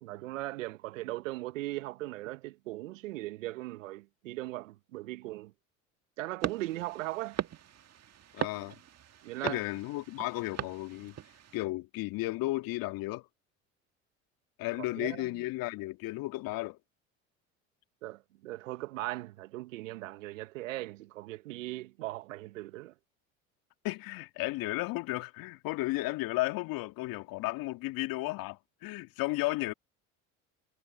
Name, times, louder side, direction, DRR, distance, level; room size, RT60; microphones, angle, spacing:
voice 1, 0.0-5.5 6.2-7.4 9.2-9.6 14.8-15.3 18.0-22.9, right 18 dB, 80° right, 1.3 m, -39 dB
sound 1, 6.4-11.6, right 10 dB, 40° right, 2.0 m, -40 dB
voice 2, 8.3-8.8 9.4-11.2 11.5-13.3 14.6-16.8 23.8-29.7, left 20 dB, 60° left, 2.4 m, -34 dB
hypercardioid pair, 65°, 38 cm